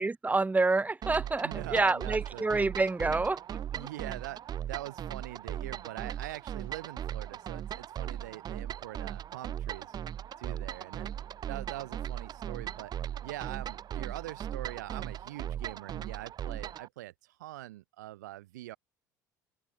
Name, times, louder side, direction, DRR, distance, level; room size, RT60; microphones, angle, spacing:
voice 1, 0.0-3.9, right 3 dB, 15° right, 2.8 m, -28 dB
sound 1, 1.0-16.9, right 10 dB, 45° right, 2.7 m, -38 dB
voice 2, 1.4-2.5 3.7-4.4 4.7-10.0 10.4-11.1 11.5-12.9 13.2-18.8, right 16 dB, 70° right, 1.3 m, -43 dB
open air
figure-of-eight pair, 60°, 10 cm